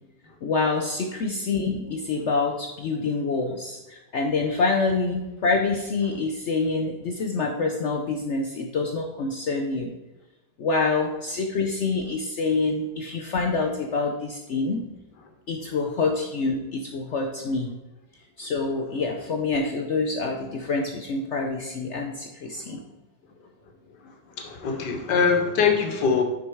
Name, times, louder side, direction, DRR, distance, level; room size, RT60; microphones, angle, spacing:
voice 1, 0.4-9.9 10.6-14.8 15.5-17.7 18.4-22.8, left 3 dB, 65° left, 2 dB, 0.7 m, -26 dB
voice 2, 24.1-26.2, left 5 dB, 80° left, 4 dB, 1.7 m, -23 dB
6.2 x 5.4 x 4.6 m, 1.0 s
omnidirectional pair, 1.8 m